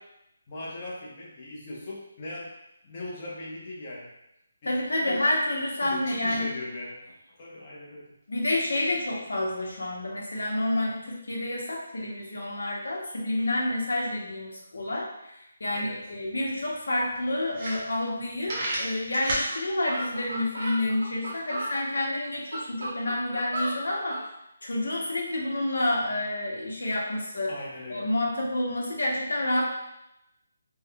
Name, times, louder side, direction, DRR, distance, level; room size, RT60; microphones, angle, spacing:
voice 1, 0.5-2.5 2.8-4.1 4.6-4.7 5.0-5.3 5.8-8.1 15.7-16.0 27.5-28.1, left 2 dB, 25° left, -4 dB, 0.6 m, -39 dB
voice 2, 4.6-6.5 8.3-24.2 24.6-27.5 27.9-29.6, left 1 dB, 90° left, -2 dB, 0.8 m, -29 dB
sound 1, 16.5-16.6 17.1-17.2 17.5-18.2 18.5-19.5, right 1 dB, 25° right, 0.5 m, -31 dB
sound 2, 19.2-19.3 19.5-19.6 19.8-21.7 22.3-24.2, right 1 dB, 85° right, 0.9 m, -34 dB
3.4 x 2.1 x 2.3 m, 0.85 s
hypercardioid pair, 175°, 0 cm